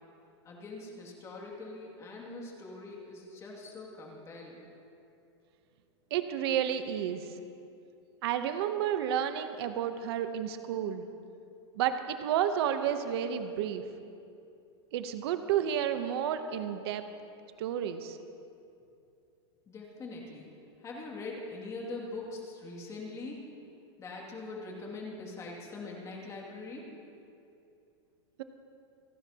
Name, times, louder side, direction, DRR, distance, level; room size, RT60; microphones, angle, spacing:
voice 1, 0.4-4.6 19.7-20.5 20.8-23.5 24.0-27.0, left 3 dB, 20° left, -2 dB, 2.5 m, -42 dB
voice 2, 6.1-7.3 8.2-11.0 11.7-13.8 14.9-17.0 17.6-18.2, right 9 dB, 60° right, 9 dB, 0.9 m, -31 dB
28.5 x 11.0 x 2.9 m, 2.6 s
supercardioid pair, 150°, 15 cm